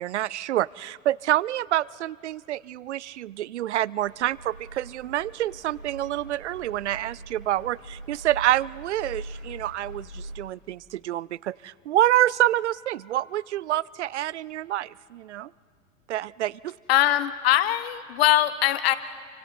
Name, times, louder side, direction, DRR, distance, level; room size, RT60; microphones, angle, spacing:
voice 1, 0.0-15.5 16.1-16.8, right 13 dB, 60° right, 24 dB, 0.5 m, -27 dB
sound 1, 4.0-10.4, right 1 dB, 80° right, 3.7 m, -42 dB
voice 2, 16.9-18.9, left 13 dB, 50° left, 15 dB, 1.0 m, -21 dB
29.5 x 24.5 x 4.2 m, 2.4 s
figure-of-eight pair, 95°, 39 cm